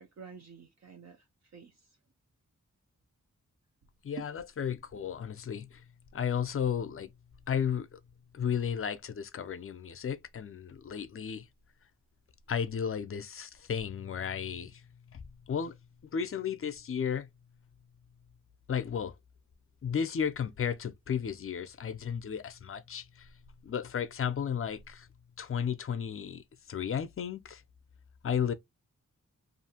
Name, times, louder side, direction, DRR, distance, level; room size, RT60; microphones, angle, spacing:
voice 1, 0.0-2.0 4.2-4.3, right 5 dB, 60° right, 0.5 m, -48 dB
voice 2, 4.0-5.8 6.1-7.1 7.5-8.0 8.3-11.4 12.5-14.8 15.1-15.2 15.5-15.8 16.1-17.3 18.7-19.1 19.8-23.3 23.6-25.1 25.4-27.6 28.2-28.5, left 7 dB, 45° left, 0.5 m, -33 dB
2.7 x 2.5 x 2.7 m
wide cardioid pair, 90°, 31 cm